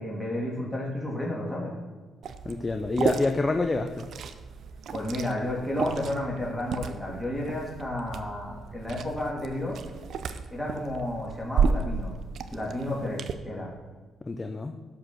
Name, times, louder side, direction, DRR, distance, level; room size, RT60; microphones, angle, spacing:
voice 1, 0.0-1.7 4.9-9.8 10.5-12.1 12.5-13.7, left 1 dB, 5° left, -4 dB, 2.9 m, -32 dB
Liquid, 2.2-13.3, right 5 dB, 65° right, 0.6 m, -33 dB
voice 2, 2.4-4.1 14.3-14.7, left 3 dB, 25° left, 5 dB, 0.7 m, -27 dB
11.5 x 5.0 x 6.2 m, 1.4 s
cardioid pair, 90°, 0 cm